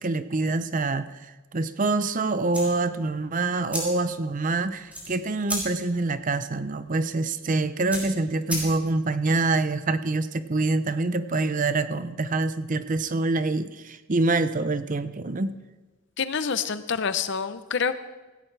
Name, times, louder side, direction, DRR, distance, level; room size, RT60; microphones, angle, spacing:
voice 1, 0.0-15.6, right 3 dB, 35° right, 12 dB, 0.6 m, -26 dB
sound 1, 2.5-9.1, equal, 5° right, 3.9 m, -37 dB
voice 2, 16.2-18.0, left 6 dB, 55° left, 12 dB, 0.7 m, -27 dB
16.5 x 16.5 x 3.3 m, 1.2 s
head